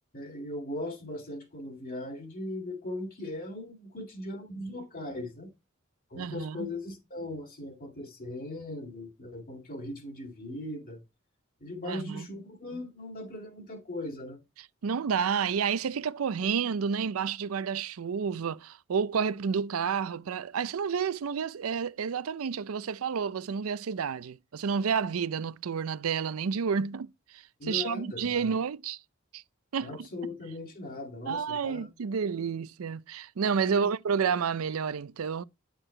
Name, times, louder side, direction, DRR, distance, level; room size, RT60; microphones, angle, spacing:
voice 1, 0.1-5.5 6.1-11.0 11.6-14.4 27.6-28.6 29.8-31.9 33.6-33.9, left 1 dB, 45° left, 2.4 m, -39 dB
voice 2, 6.2-6.7 11.8-12.3 14.8-27.1 27.3-29.0 29.3-29.4 29.7-30.1 31.3-35.4, right 6 dB, 85° right, 0.5 m, -30 dB
9.9 x 6.2 x 3.2 m
head